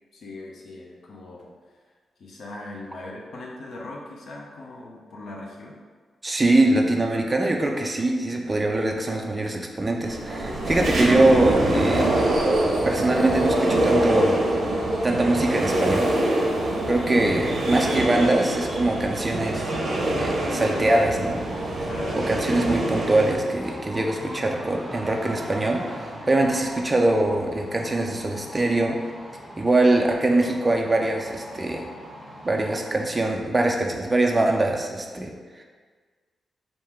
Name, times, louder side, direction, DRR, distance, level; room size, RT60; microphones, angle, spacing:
voice 1, 0.1-1.5 2.2-5.8 16.6-16.9 21.9-22.3, left 2 dB, 65° left, -2 dB, 0.6 m, -39 dB
voice 2, 6.2-12.1 12.8-14.5 15.0-16.1 16.9-19.7 20.2-21.4 21.8-21.9 22.2-29.0 29.6-31.9 32.4-35.6, right 2 dB, 15° right, 1 dB, 0.4 m, -23 dB
sound 1, 10.0-23.3, right 1 dB, 55° right, 0.7 m, -24 dB
sound 2, 20.3-33.1, equal, ahead, 0.9 m, -40 dB
3.6 x 2.7 x 4.4 m, 1.5 s
wide cardioid pair, 145°, 0 cm